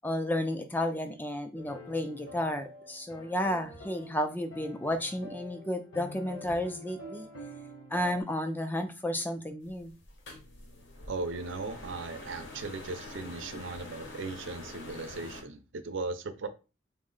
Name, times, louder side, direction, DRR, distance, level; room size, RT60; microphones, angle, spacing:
voice 1, 0.0-7.3 7.9-9.9, left 1 dB, 10° left, 0.3 m, -32 dB
sound 1, 1.6-8.2, left 1 dB, 90° left, 1.0 m, -47 dB
sound 2, 9.6-15.4, left 2 dB, 70° left, 0.7 m, -46 dB
voice 2, 11.1-16.5, right 3 dB, 75° right, 0.5 m, -37 dB
3.5 x 2.0 x 3.8 m
head